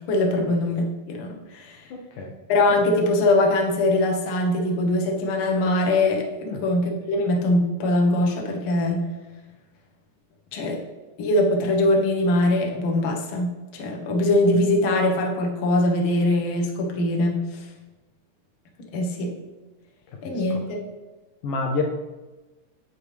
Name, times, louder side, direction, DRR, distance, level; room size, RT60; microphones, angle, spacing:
voice 1, 0.1-1.9 2.5-9.0 10.5-10.8 11.2-17.7 18.9-19.3 20.2-20.6, left 1 dB, 55° left, 0 dB, 1.7 m, -22 dB
voice 2, 1.9-2.3 6.5-6.6 20.2-20.6 21.4-21.8, left 4 dB, 75° left, 2 dB, 2.1 m, -29 dB
8.1 x 8.1 x 3.4 m, 1.2 s
omnidirectional pair, 3.9 m